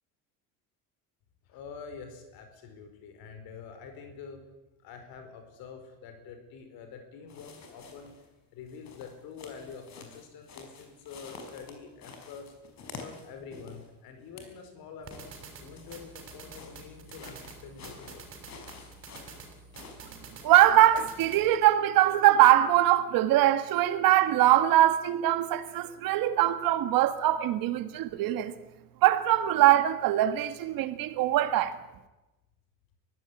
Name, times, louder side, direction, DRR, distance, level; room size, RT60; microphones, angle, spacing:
voice 1, 1.5-4.4 4.8-8.1 8.5-12.5 13.0-18.2, left 6 dB, 70° left, 4.8 m, -46 dB
sound 1, 7.3-8.3 8.7-13.9 14.2-14.6 15.1-20.1, left 4 dB, 45° left, 4.8 m, -49 dB
sound 2, 15.0-21.5, right 4 dB, 35° right, 6.7 m, -48 dB
voice 2, 20.4-28.5 29.0-31.8, right 13 dB, 65° right, 1.7 m, -22 dB
23.0 x 16.0 x 9.9 m
cardioid pair, 150°, 36 cm